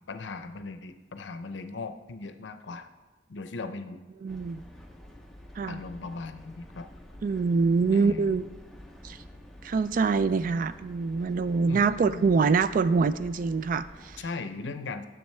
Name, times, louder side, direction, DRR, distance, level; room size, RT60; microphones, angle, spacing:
voice 1, 0.0-2.9 3.3-4.0 5.7-6.9 7.1-7.3 7.9-8.4 11.7-12.4 14.2-15.1, left 3 dB, 75° left, 9 dB, 0.6 m, -38 dB
voice 2, 4.2-4.6 5.6-5.8 7.2-8.4 9.0-9.2 9.6-14.2, right 4 dB, 45° right, 14 dB, 0.3 m, -25 dB
sound 1, 4.3-14.2, left 1 dB, ahead, 0.7 m, -49 dB
10.5 x 7.0 x 3.2 m, 1.3 s
head